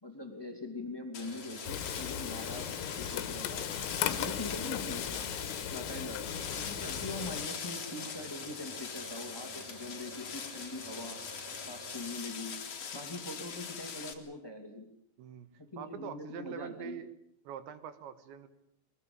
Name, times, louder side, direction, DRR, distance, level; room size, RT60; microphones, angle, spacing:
voice 1, 0.0-2.7 3.0-3.7 4.0-5.0 5.7-11.2 11.6-12.6 12.9-14.9 15.6-17.0, left 2 dB, 10° left, 5 dB, 1.2 m, -42 dB
sound 1, 1.1-14.1, left 6 dB, 45° left, 2.4 m, -42 dB
sound 2, 1.2-12.1, right 3 dB, 35° right, 3.3 m, -50 dB
Frying (food), 1.6-7.5, left 11 dB, 90° left, 3.9 m, -37 dB
voice 2, 15.2-15.5 15.8-17.1 17.4-18.5, right 9 dB, 70° right, 12 dB, 3.4 m, -44 dB
23.5 x 20.5 x 8.8 m, 0.74 s
omnidirectional pair, 5.9 m